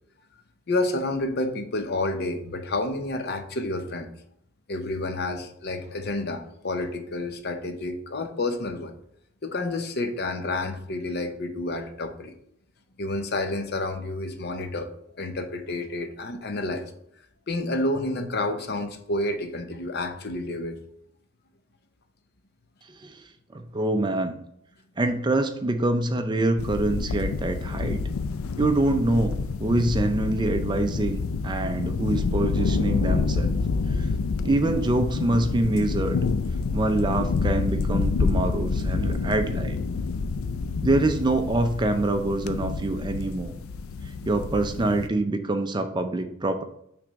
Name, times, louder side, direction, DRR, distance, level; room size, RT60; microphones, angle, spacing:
voice 1, 0.7-4.1 4.7-8.9 9.4-12.4 13.0-14.9 15.2-16.9 17.5-20.8, left 2 dB, 50° left, 7 dB, 0.7 m, -29 dB
voice 2, 23.5-24.3 25.0-28.0 28.6-33.5 33.9-34.1 34.4-36.2 36.7-39.8 40.8-43.5 44.3-46.6, right 2 dB, 20° right, 7 dB, 0.4 m, -25 dB
sound 1, 26.6-45.1, left 4 dB, 85° left, 0.4 m, -28 dB
6.0 x 3.4 x 5.1 m, 0.71 s
head